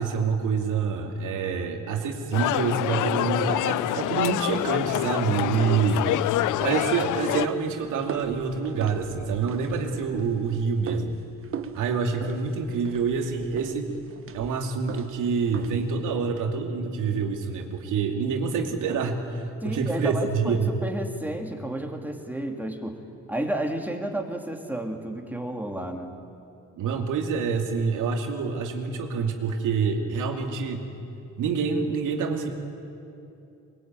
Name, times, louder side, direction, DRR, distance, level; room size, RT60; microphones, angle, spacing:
voice 1, 0.0-6.1 6.6-11.2 11.7-14.0 14.3-20.7 26.8-30.9 31.4-32.5, right 5 dB, 85° right, 4 dB, 2.6 m, -27 dB
sound 1, 2.3-7.5, left 14 dB, 80° left, 0.6 m, -26 dB
sound 2, 6.3-16.0, right 7 dB, 45° right, 1.2 m, -41 dB
voice 2, 19.6-23.0 23.3-26.1, right 1 dB, 5° right, 2 dB, 3.0 m, -31 dB
22.5 x 21.5 x 9.1 m, 2.7 s
cardioid pair, 90°, 30 cm